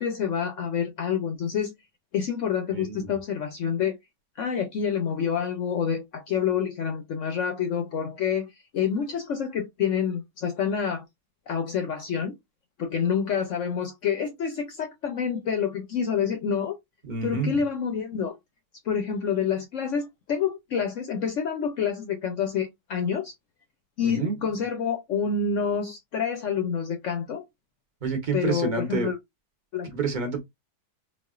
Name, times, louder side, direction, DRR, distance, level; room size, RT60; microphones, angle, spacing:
voice 1, 0.0-1.7 2.1-4.0 4.4-11.0 11.5-12.3 12.8-16.8 17.2-18.4 18.9-23.3 24.0-27.4 28.3-29.2 29.7-29.9, left 7 dB, 65° left, 0.8 m, -28 dB
voice 2, 2.7-3.1 17.1-17.5 24.0-24.4 28.0-29.1 29.9-30.4, right 4 dB, 35° right, 0.8 m, -28 dB
4.1 x 2.4 x 2.3 m
omnidirectional pair, 1.7 m